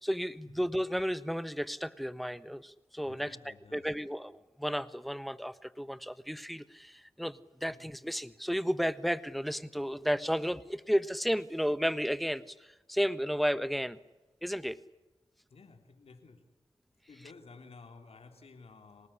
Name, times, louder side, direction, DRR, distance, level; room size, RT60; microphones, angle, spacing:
voice 1, 0.0-12.5 12.9-14.0 14.4-14.8, equal, ahead, 15 dB, 1.3 m, -33 dB
voice 2, 3.0-3.9 7.6-7.9 15.5-16.4 17.1-19.1, left 4 dB, 80° left, 5 dB, 3.0 m, -53 dB
25.5 x 19.5 x 10.0 m, 1.0 s
cardioid pair, 50°, 10 cm